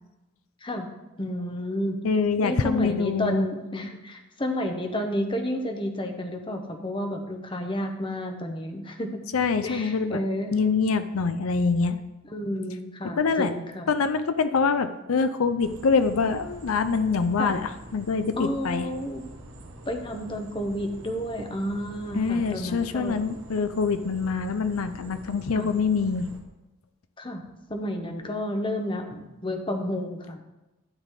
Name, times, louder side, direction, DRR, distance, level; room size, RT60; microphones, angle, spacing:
voice 1, 1.2-2.0 2.4-9.2 9.6-10.5 12.3-13.9 17.4-17.6 18.4-19.2 19.9-23.2 25.5-25.7 27.2-27.4 27.7-30.4, left 1 dB, 25° left, 4 dB, 1.0 m, -31 dB
voice 2, 2.0-3.5 9.3-10.2 10.5-12.0 13.2-13.6 13.9-18.9 22.1-26.3, left 5 dB, 85° left, 10 dB, 0.6 m, -25 dB
sound 1, 15.6-26.4, right 1 dB, 60° right, 1.5 m, -45 dB
12.5 x 4.1 x 8.1 m, 1.0 s
head